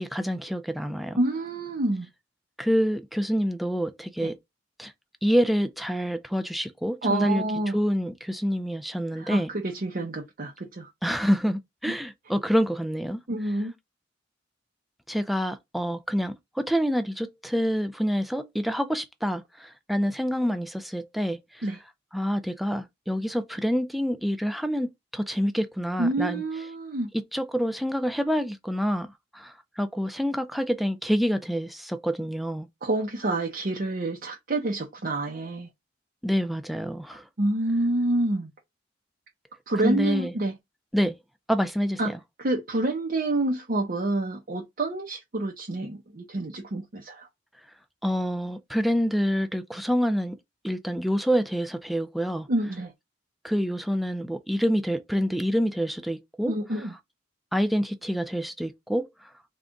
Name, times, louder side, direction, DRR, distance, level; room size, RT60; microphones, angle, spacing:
voice 1, 0.0-1.2 2.6-4.4 4.8-4.9 5.2-7.4 7.7-9.5 11.0-13.2 15.1-21.7 22.1-26.4 27.3-32.7 36.2-37.2 39.8-40.3 40.9-41.2 41.5-42.2 48.0-50.4 50.6-52.5 53.4-56.6 57.5-59.1, equal, ahead, 0.3 m, -27 dB
voice 2, 1.2-2.1 4.2-4.3 7.0-7.7 9.1-10.9 11.9-12.0 13.3-13.7 21.6-21.8 26.0-27.1 32.8-35.7 37.1-38.5 39.7-40.5 42.0-42.1 42.4-47.3 52.5-52.9 56.5-56.9, right 2 dB, 50° right, 0.7 m, -28 dB
3.6 x 2.3 x 3.9 m
head